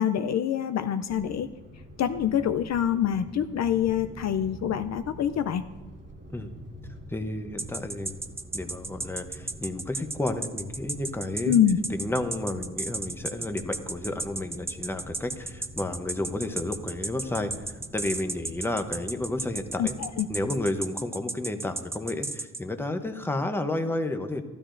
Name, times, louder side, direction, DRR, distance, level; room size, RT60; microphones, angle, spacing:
voice 1, 0.0-1.5 2.0-5.6 11.5-11.8 19.8-20.3, left 9 dB, 55° left, 9 dB, 0.5 m, -25 dB
sound 1, 1.1-20.6, equal, 35° right, 1.4 m, -46 dB
voice 2, 7.1-8.2 8.5-11.5 11.9-20.0 20.3-24.4, left 2 dB, 5° left, 7 dB, 0.8 m, -31 dB
sound 2, 7.6-22.6, right 2 dB, 10° right, 0.4 m, -33 dB
14.0 x 12.5 x 2.6 m, 1.2 s
cardioid pair, 105°, 32 cm